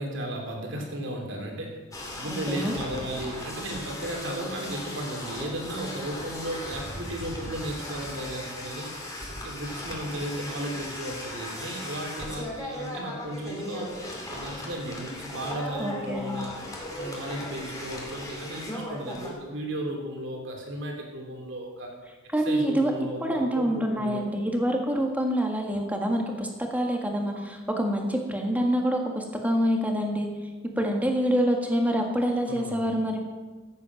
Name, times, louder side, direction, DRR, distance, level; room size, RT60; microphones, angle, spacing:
voice 1, 0.0-1.8 2.1-8.9 9.3-14.0 14.3-16.5 16.9-21.9 22.4-24.3 32.4-32.8, right 1 dB, 70° right, 1 dB, 3.1 m, -35 dB
sound 1, 1.9-19.3, left 1 dB, 20° left, 2.5 m, -37 dB
voice 2, 2.2-2.8 15.8-16.4 22.3-22.9 23.2-30.3 30.8-33.2, equal, 10° right, 2 dB, 1.7 m, -26 dB
14.5 x 8.6 x 6.0 m, 1.3 s
head